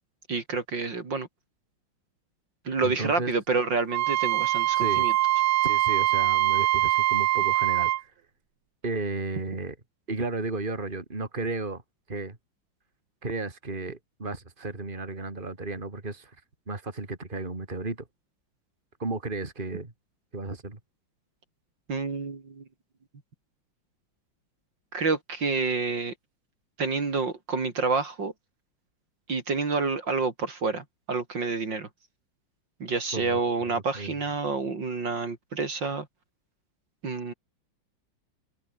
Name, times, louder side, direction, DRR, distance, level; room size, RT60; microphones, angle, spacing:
voice 1, 0.3-1.3 2.7-5.1 21.9-22.6 24.9-26.1 26.8-28.3 29.3-31.9 32.8-36.1 37.0-37.3, right 4 dB, 60° right, 3.8 m, -28 dB
voice 2, 2.8-3.3 4.8-5.1 5.6-8.1 8.8-9.8 10.1-11.8 12.1-12.4 13.2-16.3 16.7-18.1 19.0-19.9 20.3-20.8 33.1-33.4 33.7-34.2, right 3 dB, 25° right, 3.4 m, -33 dB
Wind instrument woodwind instrument, 3.9-8.0, right 15 dB, 85° right, 1.5 m, -23 dB
omnidirectional pair, 2.2 m